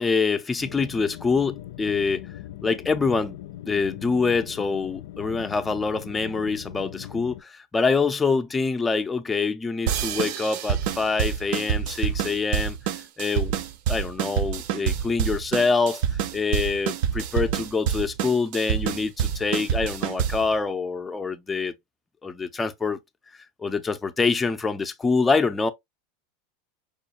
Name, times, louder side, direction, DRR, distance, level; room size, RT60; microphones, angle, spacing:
voice 1, 0.0-2.3 2.6-3.4 3.7-13.5 13.9-21.7 22.2-23.0 23.6-25.7, left 4 dB, 15° left, 0.5 m, -25 dB
sound 1, 0.6-7.4, left 13 dB, 75° left, 0.3 m, -40 dB
sound 2, 9.9-20.5, right 9 dB, 60° right, 0.4 m, -27 dB
4.9 x 2.2 x 2.7 m
hypercardioid pair, 105°, 0 cm